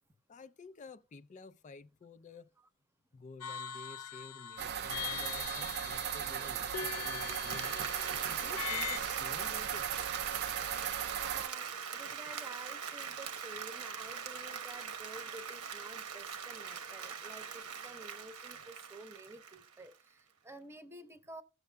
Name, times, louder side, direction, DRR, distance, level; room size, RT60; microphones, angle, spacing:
voice 1, 0.3-2.5 3.1-7.7 8.4-9.9, left 3 dB, 35° left, 0.4 m, -51 dB
sound 1, 3.4-9.0, left 9 dB, 85° left, 0.6 m, -42 dB
sound 2, 4.6-11.5, right 9 dB, 45° right, 0.4 m, -37 dB
Applause, 6.9-19.9, right 7 dB, 80° right, 1.0 m, -42 dB
voice 2, 11.1-21.4, right 2 dB, 10° right, 0.8 m, -51 dB
16.5 x 6.5 x 2.2 m
head